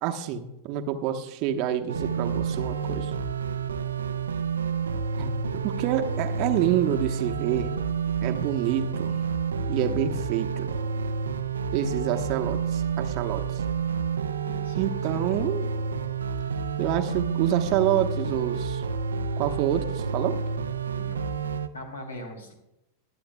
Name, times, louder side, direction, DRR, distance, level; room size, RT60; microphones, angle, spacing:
voice 1, 0.0-3.1 5.2-7.7 8.2-9.2 9.7-10.7 11.7-13.6 14.8-15.6 16.8-18.8 19.4-20.4, right 10 dB, 45° right, 7 dB, 1.0 m, -27 dB
sound 1, 1.9-21.7, right 5 dB, 70° right, 0.6 m, -29 dB
voice 2, 14.5-14.8 15.1-15.4 21.0-21.3 21.7-22.5, left 1 dB, 75° left, 2 dB, 2.8 m, -41 dB
23.0 x 8.8 x 2.2 m, 0.88 s
figure-of-eight pair, 90°, 0 cm